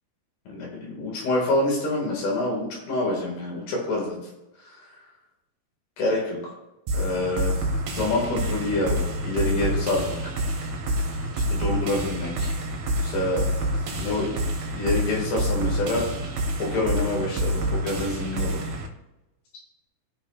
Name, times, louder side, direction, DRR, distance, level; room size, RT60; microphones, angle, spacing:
voice 1, 0.5-4.2 4.7-4.8 6.0-6.4 6.9-7.6 7.9-10.3 11.5-12.5 13.0-13.5 14.0-16.1 16.6-18.7, left 2 dB, 85° left, -3 dB, 4.0 m, -27 dB
sound 1, 6.9-18.9, equal, 65° right, 2.1 m, -27 dB
15.0 x 5.3 x 2.4 m, 0.95 s
omnidirectional pair, 4.5 m